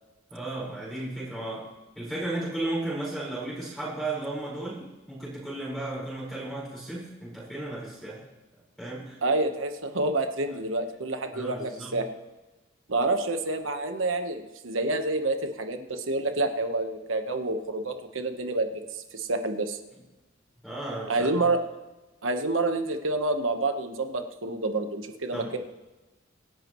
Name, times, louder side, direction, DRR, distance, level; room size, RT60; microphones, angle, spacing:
voice 1, 0.3-8.2 8.8-9.2 11.3-12.0 20.6-21.3 25.3-25.5, right 2 dB, ahead, -8 dB, 4.9 m, -34 dB
voice 2, 9.2-12.1 12.9-19.8 21.1-21.6 22.2-25.6, right 2 dB, 75° right, 6 dB, 1.3 m, -28 dB
25.5 x 11.0 x 3.1 m, 1.1 s
head